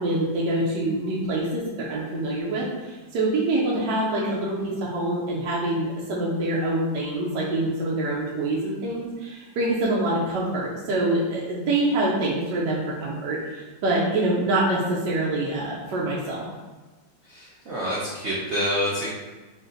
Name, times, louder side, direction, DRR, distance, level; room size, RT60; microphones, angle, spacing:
voice 1, 0.0-16.5, right 2 dB, 70° right, -4 dB, 1.2 m, -25 dB
voice 2, 17.3-19.1, equal, 85° right, -6 dB, 0.6 m, -27 dB
3.9 x 2.5 x 3.7 m, 1.3 s
omnidirectional pair, 2.1 m